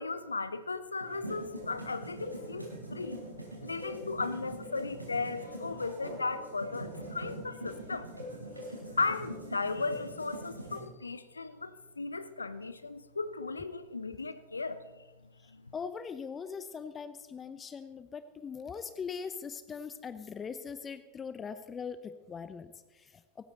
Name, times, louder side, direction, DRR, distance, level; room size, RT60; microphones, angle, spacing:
voice 1, 0.0-3.2 3.6-8.1 9.0-15.0 15.5-15.7, left 3 dB, 80° left, 13 dB, 0.8 m, -36 dB
sound 1, 1.0-10.8, right 1 dB, 90° right, 4.4 m, -43 dB
voice 2, 15.7-23.1, left 6 dB, 20° left, 12 dB, 0.8 m, -41 dB
18.0 x 15.5 x 4.0 m, 1.2 s
figure-of-eight pair, 90°, 0 cm